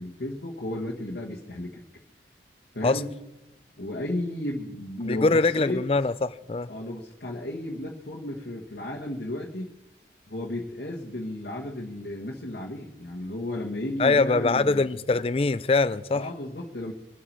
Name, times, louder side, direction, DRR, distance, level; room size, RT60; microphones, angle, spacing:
voice 1, 0.0-1.8 2.7-3.1 3.8-5.8 6.7-9.7 10.3-14.9 16.1-16.9, left 1 dB, 65° left, 1.4 m, -33 dB
voice 2, 5.1-6.7 14.0-16.3, left 3 dB, 30° left, 0.4 m, -23 dB
24.0 x 8.3 x 4.6 m
head